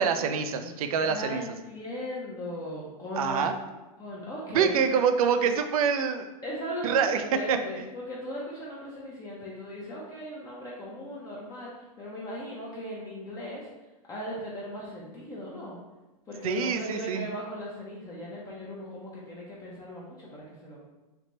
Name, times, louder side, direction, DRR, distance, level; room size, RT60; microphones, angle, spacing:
voice 1, 0.0-1.4 3.2-3.5 4.5-6.2 6.8-7.2 7.5-7.6 16.4-17.3, right 6 dB, 75° right, 8 dB, 0.4 m, -25 dB
voice 2, 0.6-3.5 4.0-4.7 6.4-11.7 12.0-13.7 14.1-15.8 16.3-20.8, equal, 20° left, -5 dB, 0.6 m, -38 dB
3.4 x 2.1 x 3.8 m, 1.1 s
hypercardioid pair, 135°, 19 cm